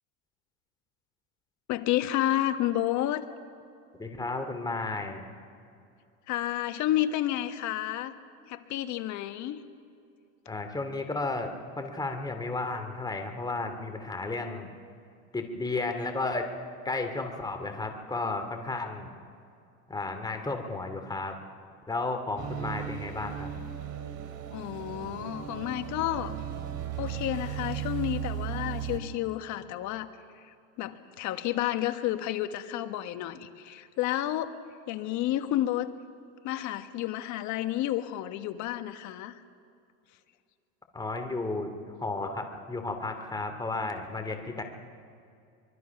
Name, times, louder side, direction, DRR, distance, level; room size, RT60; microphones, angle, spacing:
voice 1, 1.7-3.3 6.3-8.1 8.5-9.6 24.5-26.4 27.0-30.1 30.3-34.6 34.9-35.9 36.4-39.4, left 13 dB, 55° left, 9 dB, 1.4 m, -31 dB
voice 2, 3.9-5.2 10.5-14.7 15.3-16.5 16.8-19.1 19.9-21.4 21.9-23.5 40.9-44.6, left 3 dB, 10° left, 5 dB, 2.4 m, -33 dB
sound 1, 22.4-29.0, right 11 dB, 45° right, 2.9 m, -36 dB
24.0 x 23.0 x 5.9 m, 2.5 s
supercardioid pair, 110°, 35 cm